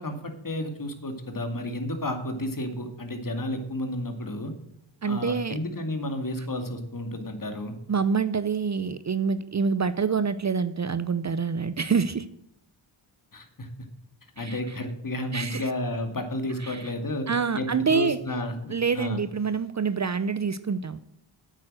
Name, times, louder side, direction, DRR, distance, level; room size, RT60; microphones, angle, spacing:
voice 1, 0.0-4.5 5.0-7.7 13.3-13.7 14.4-17.3 17.5-19.2, left 1 dB, 40° left, 6 dB, 2.3 m, -32 dB
voice 2, 5.0-5.6 7.9-12.3 14.4-14.6 15.3-15.7 16.6-16.9 17.3-18.2 18.7-21.0, right 5 dB, 35° right, 14 dB, 0.6 m, -26 dB
9.1 x 8.4 x 6.3 m, 0.79 s
cardioid pair, 60°, 48 cm